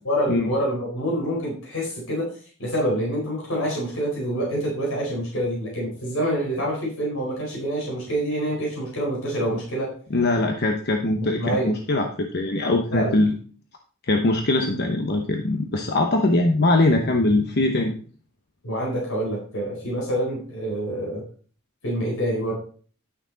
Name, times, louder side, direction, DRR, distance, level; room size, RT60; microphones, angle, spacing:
voice 1, 0.0-2.3 2.6-9.9 11.2-11.7 12.9-13.1 18.6-21.2 21.8-22.5, right 1 dB, 75° left, -3 dB, 4.5 m, -26 dB
voice 2, 10.1-13.4 14.1-17.9, left 2 dB, 50° left, 3 dB, 0.9 m, -22 dB
11.0 x 6.6 x 4.0 m, 0.43 s
head